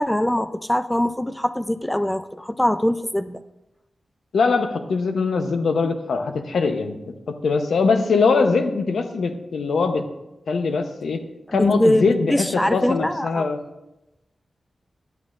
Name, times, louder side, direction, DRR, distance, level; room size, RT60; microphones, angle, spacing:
voice 1, 0.0-3.4 11.5-13.5, left 1 dB, 10° left, 11 dB, 0.3 m, -22 dB
voice 2, 4.3-10.1 10.5-11.2 11.5-13.6, left 4 dB, 85° left, 7 dB, 0.8 m, -22 dB
11.5 x 8.3 x 2.5 m, 0.94 s
wide cardioid pair, 100°, 0 cm